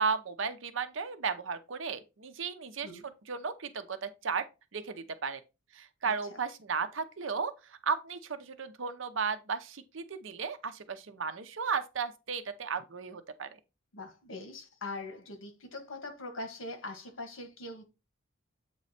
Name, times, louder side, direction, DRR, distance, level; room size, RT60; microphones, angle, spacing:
voice 1, 0.0-4.5 4.7-5.4 5.7-13.5, right 5 dB, 70° right, 0.7 m, -35 dB
voice 2, 6.0-6.4 13.9-17.8, left 2 dB, 85° left, 1.5 m, -42 dB
7.9 x 3.1 x 4.1 m
head